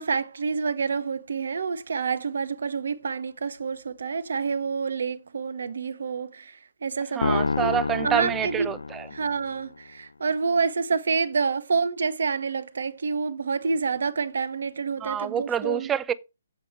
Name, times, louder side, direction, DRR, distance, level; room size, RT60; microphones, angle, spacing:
voice 1, 0.0-8.7 9.1-15.9, right 5 dB, 55° right, 0.9 m, -28 dB
voice 2, 7.1-9.1 15.0-16.1, right 9 dB, 10° right, 0.5 m, -27 dB
sound 1, 7.2-9.6, left 4 dB, 65° left, 0.4 m, -28 dB
8.5 x 7.9 x 4.8 m
figure-of-eight pair, 135°, 0 cm